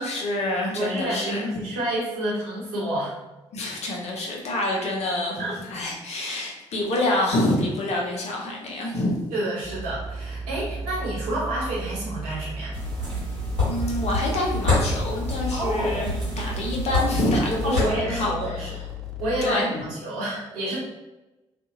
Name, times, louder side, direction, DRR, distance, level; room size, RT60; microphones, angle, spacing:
voice 1, 0.0-1.5 3.5-9.2 13.6-18.3 19.4-19.9, left 1 dB, 45° left, -1 dB, 0.7 m, -27 dB
voice 2, 0.7-3.1 5.4-5.5 9.3-12.7 15.5-16.0 17.6-18.7 19.2-20.8, right 1 dB, 65° right, -6 dB, 1.0 m, -29 dB
sound 1, 9.6-19.4, right 2 dB, 5° left, 0.4 m, -34 dB
sound 2, 12.7-17.9, left 3 dB, 85° right, 1.1 m, -27 dB
2.6 x 2.5 x 2.7 m, 1.0 s
figure-of-eight pair, 40°, 15 cm